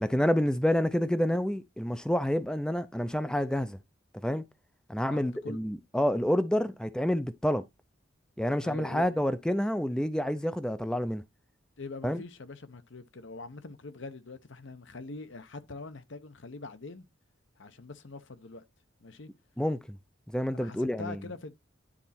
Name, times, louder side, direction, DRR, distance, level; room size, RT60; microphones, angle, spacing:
voice 1, 0.0-3.8 4.2-4.4 4.9-7.6 8.4-11.2 12.0-12.2 19.6-20.0 20.3-21.2, equal, 5° left, 0.4 m, -28 dB
voice 2, 5.1-5.6 8.6-9.2 11.8-17.1 17.6-18.6 19.0-19.3 20.5-21.6, left 3 dB, 65° left, 0.8 m, -43 dB
9.9 x 4.1 x 4.2 m
head